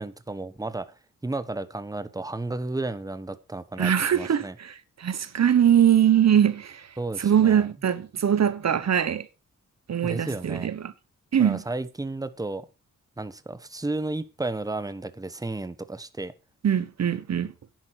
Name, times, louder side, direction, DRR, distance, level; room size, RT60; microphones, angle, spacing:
voice 1, 0.0-4.5 7.0-7.7 10.0-10.7 11.4-12.7 13.2-16.3, right 2 dB, 10° right, 1.1 m, -33 dB
voice 2, 3.8-6.9 7.2-9.3 9.9-10.9 11.3-11.6 16.6-17.5, right 9 dB, 55° right, 1.0 m, -22 dB
10.5 x 10.5 x 4.8 m
wide cardioid pair, 105°, 32 cm